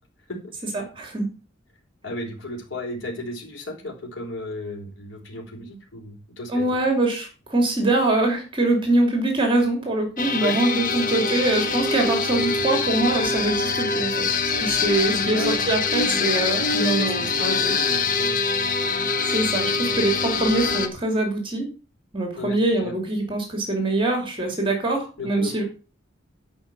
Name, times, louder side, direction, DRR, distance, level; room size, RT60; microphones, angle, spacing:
voice 1, 0.7-1.3 6.5-17.7 19.3-21.7 22.1-25.6, right 2 dB, 25° right, 3 dB, 2.8 m, -23 dB
voice 2, 2.0-6.7 10.3-10.7 15.3-15.6 16.7-18.4 22.4-22.9 25.2-25.6, left 2 dB, 80° left, 0 dB, 4.2 m, -34 dB
sound 1, 10.2-20.9, left 4 dB, 45° left, 1.4 m, -24 dB
11.5 x 5.0 x 7.3 m, 0.35 s
head